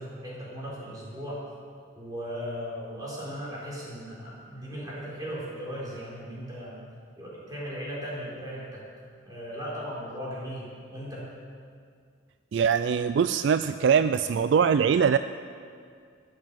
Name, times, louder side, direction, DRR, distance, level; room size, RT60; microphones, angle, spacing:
voice 1, 0.0-1.4 1.9-6.8 7.2-8.9 9.2-11.3, equal, 20° right, -6 dB, 3.9 m, -37 dB
voice 2, 12.5-15.2, right 7 dB, 65° right, 11 dB, 0.3 m, -22 dB
14.0 x 7.7 x 7.5 m, 2.2 s
head